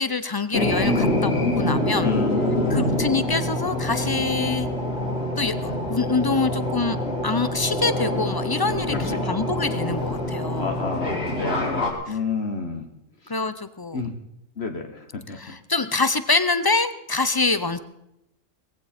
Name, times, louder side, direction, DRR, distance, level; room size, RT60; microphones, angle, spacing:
voice 1, 0.0-2.1 2.7-4.7 5.4-7.0 7.2-10.8 12.1-12.2 13.3-14.0 15.3-17.8, left 3 dB, 30° left, 12 dB, 0.4 m, -25 dB
London Underground Arriving at Charing Cross Station, 0.5-11.9, left 1 dB, 70° left, 3.4 m, -25 dB
voice 2, 2.0-3.0 9.0-9.4 10.6-12.9 13.9-14.1 14.6-15.6, left 5 dB, 55° left, 5 dB, 1.3 m, -30 dB
19.0 x 15.5 x 4.3 m, 0.83 s
omnidirectional pair, 1.3 m